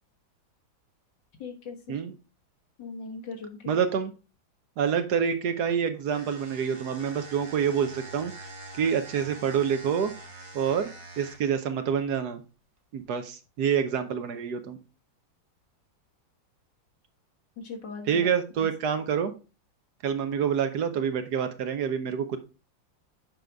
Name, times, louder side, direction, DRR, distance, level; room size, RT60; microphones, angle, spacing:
voice 1, 1.4-2.0 2.8-3.8 17.6-18.3 18.6-18.7, left 4 dB, 70° left, 2 dB, 2.1 m, -39 dB
voice 2, 3.7-4.1 4.8-8.3 8.7-10.1 10.5-10.9 11.2-12.4 12.9-14.8 18.1-19.3 20.0-22.4, right 7 dB, 65° right, 9 dB, 1.2 m, -27 dB
sound 1, 6.1-11.6, right 2 dB, 30° right, 0.5 m, -44 dB
7.6 x 5.2 x 3.4 m, 0.32 s
omnidirectional pair, 2.0 m